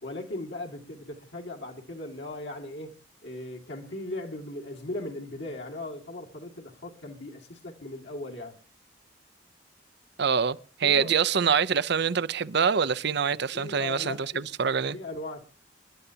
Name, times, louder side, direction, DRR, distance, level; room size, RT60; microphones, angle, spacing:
voice 1, 0.0-2.9 3.2-8.6 10.8-11.1 13.5-14.5 14.9-15.4, left 2 dB, 70° left, 2.3 m, -38 dB
voice 2, 10.2-15.0, right 6 dB, 65° right, 0.7 m, -25 dB
27.5 x 11.0 x 2.8 m
head